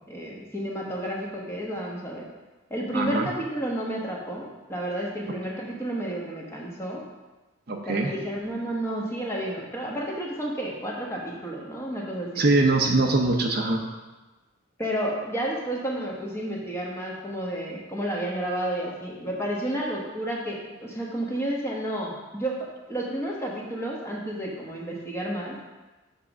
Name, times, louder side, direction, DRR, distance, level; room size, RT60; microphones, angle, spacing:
voice 1, 0.1-2.2 2.7-7.0 7.8-12.4 14.8-22.5 22.9-25.5, right 1 dB, 15° left, -3 dB, 1.2 m, -31 dB
voice 2, 2.9-3.3 7.7-8.1 12.4-13.8, right 2 dB, 50° right, 2 dB, 0.7 m, -22 dB
7.2 x 3.6 x 6.0 m, 1.2 s
head